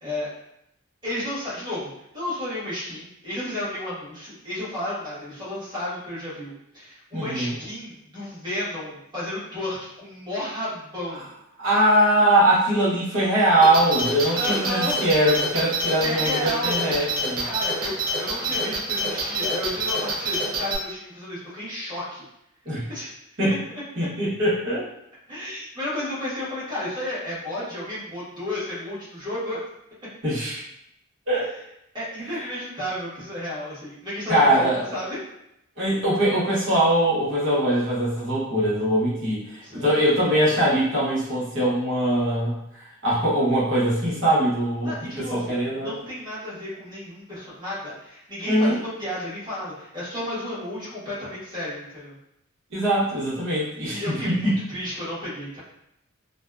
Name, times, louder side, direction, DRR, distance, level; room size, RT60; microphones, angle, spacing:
voice 1, 1.0-11.3 14.3-15.0 16.0-16.8 17.4-22.2 22.9-23.1 23.4-23.6 24.0-24.1 25.3-29.6 31.3-31.5 31.9-35.2 39.6-39.9 44.8-52.1 53.9-55.6, left 1 dB, 20° right, -11 dB, 1.2 m, -32 dB
voice 2, 7.1-7.5 11.6-17.5 22.6-22.8 23.4-23.6 24.0-24.9 30.2-30.6 31.3-31.5 32.3-32.5 34.3-34.9 35.8-45.9 48.4-48.8 52.7-54.5, right 1 dB, 60° right, -8 dB, 0.9 m, -22 dB
sound 1, 13.6-20.8, right 1 dB, 40° right, 0.4 m, -27 dB
2.6 x 2.1 x 2.3 m, 0.80 s
head